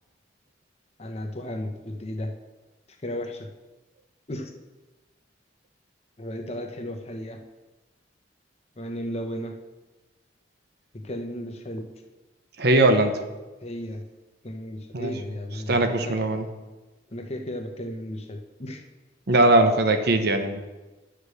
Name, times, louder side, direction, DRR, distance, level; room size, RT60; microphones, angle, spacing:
voice 1, 1.0-2.3 3.0-3.5 4.3-4.6 6.2-7.4 8.8-9.5 11.0-11.9 13.6-14.0 14.4-16.1 17.1-18.8 19.6-19.7, left 1 dB, 35° left, 4 dB, 0.9 m, -34 dB
voice 2, 12.6-13.2 14.9-15.1 15.7-16.5 19.3-20.6, right 2 dB, 60° right, 7 dB, 0.8 m, -20 dB
9.8 x 5.0 x 6.4 m, 1.2 s
head